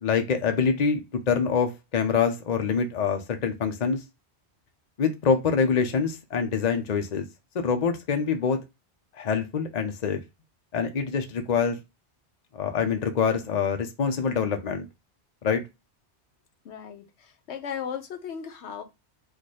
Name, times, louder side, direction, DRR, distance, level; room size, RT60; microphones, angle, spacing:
voice 1, 0.0-4.0 5.0-7.2 7.5-8.6 9.2-10.2 10.7-11.8 12.5-14.9 15.4-15.6, left 6 dB, 45° left, 0.7 m, -25 dB
voice 2, 16.6-18.8, left 7 dB, 80° left, 1.0 m, -36 dB
4.2 x 2.5 x 4.8 m
omnidirectional pair, 1.1 m